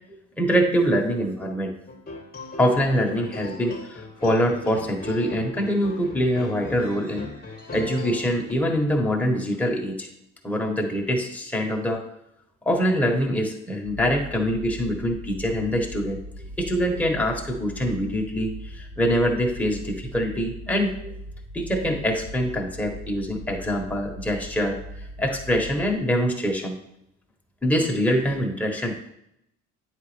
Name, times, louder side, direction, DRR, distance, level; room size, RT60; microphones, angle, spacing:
voice 1, 0.4-1.7 2.6-7.3 7.7-10.1 10.4-12.0 12.6-16.2 16.6-21.1 21.5-24.8 25.2-26.8 27.6-29.1, equal, 5° left, 0 dB, 1.5 m, -24 dB
sound 1, 1.9-8.5, left 2 dB, 20° left, 1.5 m, -38 dB
sound 2, 13.8-25.9, equal, 90° right, 2.5 m, -39 dB
9.3 x 4.3 x 3.4 m, 0.79 s
hypercardioid pair, 55°, 39 cm